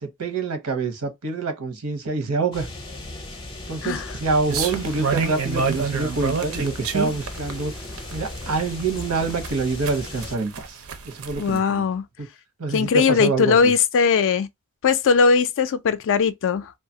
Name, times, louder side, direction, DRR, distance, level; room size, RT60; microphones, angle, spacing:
voice 1, 0.0-2.7 3.7-7.7 8.1-11.8 12.2-12.3 12.6-13.7, right 4 dB, 85° right, 0.8 m, -26 dB
sound 1, 2.5-10.4, left 2 dB, 25° left, 0.6 m, -37 dB
sound 2, 4.5-11.6, right 5 dB, 65° right, 0.5 m, -28 dB
voice 2, 11.4-12.0 12.7-14.5 14.8-16.7, left 5 dB, 60° left, 0.4 m, -19 dB
2.7 x 2.3 x 2.7 m
head